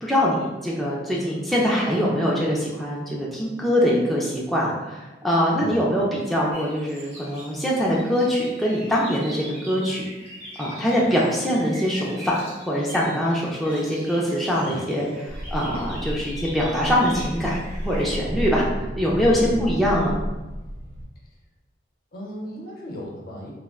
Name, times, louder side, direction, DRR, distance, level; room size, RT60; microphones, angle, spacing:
voice 1, 0.0-10.1 10.6-18.6 19.0-20.1, equal, ahead, -5 dB, 0.3 m, -23 dB
voice 2, 5.5-5.9 14.6-14.9 19.5-19.8 22.1-23.5, equal, 55° left, -2 dB, 0.7 m, -36 dB
sound 1, 6.5-18.1, equal, 40° right, 0.8 m, -42 dB
sound 2, 15.3-21.1, equal, 85° right, 0.5 m, -32 dB
3.5 x 2.1 x 2.3 m, 1.1 s
head